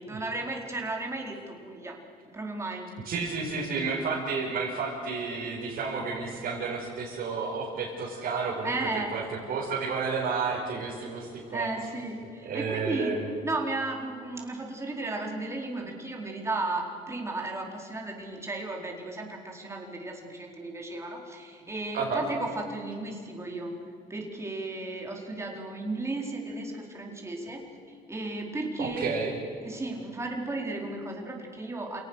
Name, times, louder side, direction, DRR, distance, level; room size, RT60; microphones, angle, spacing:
voice 1, 0.0-2.0 2.3-2.9 8.6-9.1 11.5-13.2 13.4-23.7 24.1-29.1 29.6-32.0, right 2 dB, 15° right, 0 dB, 4.5 m, -34 dB
voice 2, 3.0-9.2 9.5-11.7 12.4-13.3 21.9-22.2 28.8-29.3, right 4 dB, 60° right, -4 dB, 5.2 m, -31 dB
28.5 x 18.0 x 6.5 m, 2.4 s
cardioid pair, 110°, 17 cm